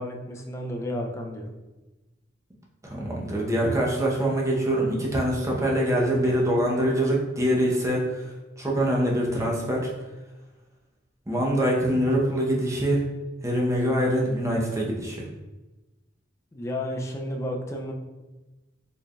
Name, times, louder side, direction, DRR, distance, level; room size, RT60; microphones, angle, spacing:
voice 1, 0.0-1.5 16.5-17.9, left 1 dB, 15° left, 1 dB, 0.4 m, -32 dB
voice 2, 2.8-8.3 8.6-9.9 11.3-13.0 13.4-15.3, equal, 15° right, -3 dB, 0.7 m, -24 dB
4.3 x 3.3 x 2.3 m, 1.1 s
head